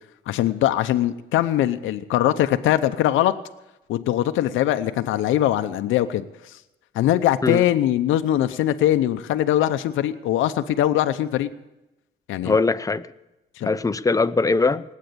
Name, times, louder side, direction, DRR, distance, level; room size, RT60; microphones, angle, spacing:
voice 1, 0.3-3.3 3.9-6.2 6.9-11.5 12.3-12.6 13.6-13.7, left 12 dB, 85° left, 9 dB, 0.7 m, -21 dB
voice 2, 12.4-13.1 13.6-14.8, left 3 dB, 15° left, 11 dB, 0.7 m, -21 dB
19.5 x 8.5 x 6.9 m, 0.99 s
cardioid pair, 90°, 20 cm